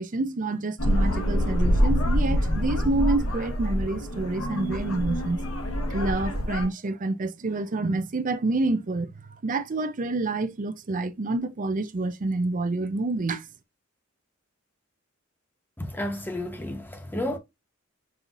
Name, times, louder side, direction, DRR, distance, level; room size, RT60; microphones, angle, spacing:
voice 1, 0.0-5.4 5.9-9.1 9.4-13.4, right 2 dB, 40° right, 0.5 m, -28 dB
sound 1, 0.8-6.7, equal, 75° left, 1.2 m, -25 dB
voice 2, 15.8-17.4, left 1 dB, 10° left, 0.9 m, -31 dB
5.4 x 2.8 x 2.4 m
head